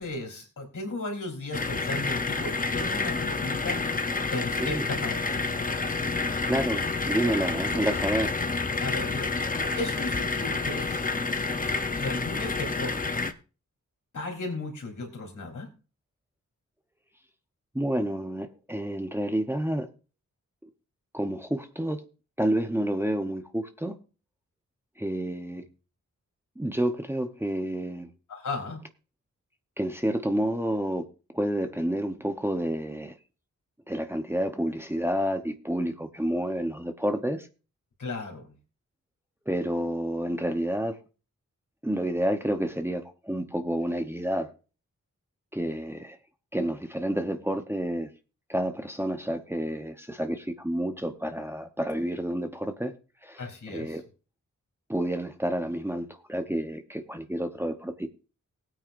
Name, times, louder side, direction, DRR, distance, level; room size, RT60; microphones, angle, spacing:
voice 1, 0.0-4.0 4.3-5.5 8.8-11.1 12.0-13.3 14.1-15.7 28.3-28.8 38.0-38.6 53.4-54.0, left 2 dB, 75° left, 3.7 m, -35 dB
sound 1, 1.5-13.3, left 3 dB, 25° left, 0.8 m, -29 dB
voice 2, 6.5-8.4 17.7-19.9 20.6-20.7 21.1-22.0 22.4-23.9 25.0-25.6 26.6-28.1 29.8-31.1 31.3-33.2 33.9-37.5 39.5-41.0 41.8-44.5 45.5-46.2 46.5-48.1 48.5-52.9 53.2-54.0 54.9-58.1, right 1 dB, 10° right, 0.9 m, -29 dB
19.5 x 8.9 x 2.6 m
wide cardioid pair, 115°, 31 cm